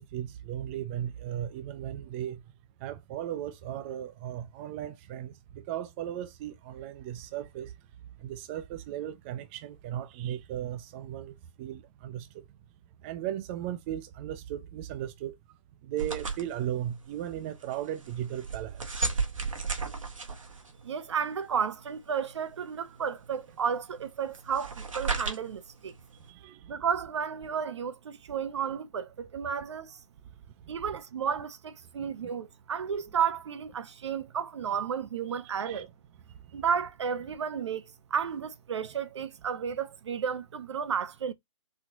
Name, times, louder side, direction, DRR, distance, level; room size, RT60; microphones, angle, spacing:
voice 1, 0.0-2.4 2.8-7.7 8.2-12.4 13.0-15.4 15.8-19.1 26.3-26.7 32.0-32.1 35.3-35.9, right 11 dB, 20° right, 0.4 m, -37 dB
sound 1, 16.0-26.3, right 4 dB, 75° right, 1.8 m, -36 dB
voice 2, 20.8-25.9 26.7-30.0 30.7-35.9 36.5-37.8 38.1-41.3, right 7 dB, 60° right, 0.8 m, -32 dB
4.1 x 3.9 x 3.0 m
figure-of-eight pair, 130°, 17 cm